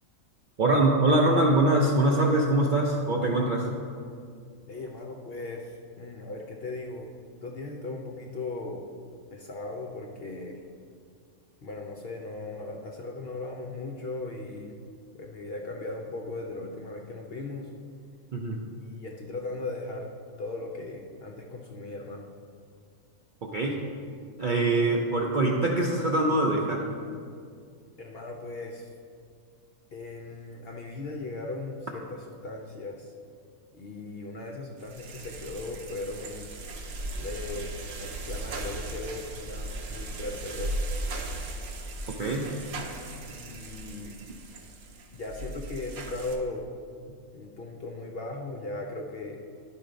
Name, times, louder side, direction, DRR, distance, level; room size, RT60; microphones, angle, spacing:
voice 1, 0.6-3.7 18.3-18.6 23.4-23.8 24.4-26.9 42.1-42.5, right 2 dB, 55° right, -1 dB, 0.6 m, -23 dB
voice 2, 4.7-7.1 7.4-8.9 9.3-10.6 11.6-14.8 15.1-17.7 18.8-22.3 28.0-28.9 29.9-33.1 33.7-36.5 37.2-40.7 43.3-44.2 45.1-46.7 47.3-49.4, left 2 dB, 55° left, 1 dB, 0.7 m, -38 dB
sound 1, 34.8-46.4, right 2 dB, 80° right, 1.3 m, -37 dB
11.0 x 4.3 x 5.1 m, 2.2 s
omnidirectional pair, 1.5 m